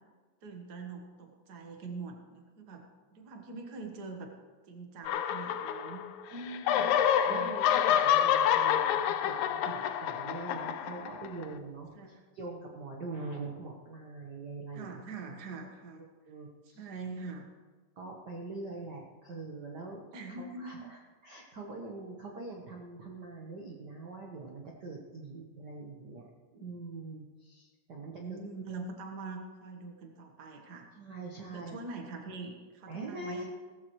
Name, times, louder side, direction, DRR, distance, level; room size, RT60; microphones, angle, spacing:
voice 1, 0.4-2.8 3.1-4.3 4.7-6.0 6.7-7.5 9.6-9.8 11.9-12.2 14.7-16.0 16.7-17.5 20.1-20.8 28.1-30.9 31.5-33.5, right 4 dB, 60° right, 3 dB, 1.0 m, -43 dB
sound 1, 5.1-6.2 6.5-11.4, left 9 dB, 80° left, 1.8 m, -28 dB
voice 2, 6.3-7.0 7.3-14.9 16.3-16.8 18.0-20.0 20.4-26.3 26.5-28.4 31.0-31.7 32.9-33.5, right 3 dB, 85° right, -1 dB, 0.9 m, -43 dB
17.0 x 14.0 x 3.1 m, 1.4 s
omnidirectional pair, 3.9 m